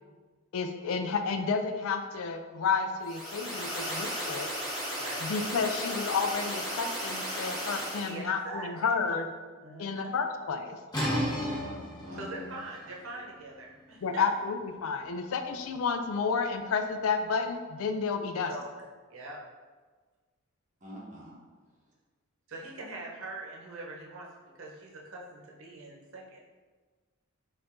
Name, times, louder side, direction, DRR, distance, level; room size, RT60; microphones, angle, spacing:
voice 1, 0.5-4.5 5.2-9.3 9.8-10.8 14.0-18.5, left 5 dB, 75° left, 7 dB, 0.4 m, -31 dB
sound 1, 3.0-8.1, equal, ahead, 1.3 m, -35 dB
voice 2, 4.9-5.3 8.0-8.9 9.6-10.1 12.1-14.2 18.5-18.8 19.1-19.4 22.5-24.3 24.5-26.4, right 2 dB, 65° right, -2 dB, 0.8 m, -42 dB
sound 2, 10.9-16.5, equal, 20° left, 1.0 m, -36 dB
voice 3, 11.3-12.4 20.8-21.3, left 1 dB, 35° right, -4 dB, 1.1 m, -44 dB
4.3 x 2.5 x 4.3 m, 1.4 s
head